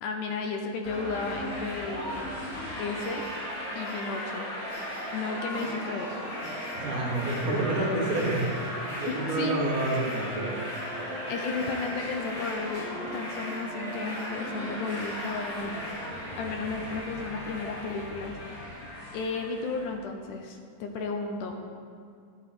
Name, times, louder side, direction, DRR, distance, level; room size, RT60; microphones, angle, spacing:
voice 1, 0.0-2.3 2.8-3.3 3.8-4.5 5.1-6.2 9.3-9.6 11.3-15.8 16.3-18.3 18.7-18.8 19.1-21.6, left 4 dB, 75° left, 3 dB, 2.2 m, -33 dB
sound 1, 0.8-19.9, equal, 50° left, 3.7 m, -36 dB
voice 2, 6.7-8.5 9.0-10.7, right 2 dB, 65° right, -2 dB, 2.8 m, -28 dB
12.0 x 8.6 x 4.2 m, 2.2 s
omnidirectional pair, 3.9 m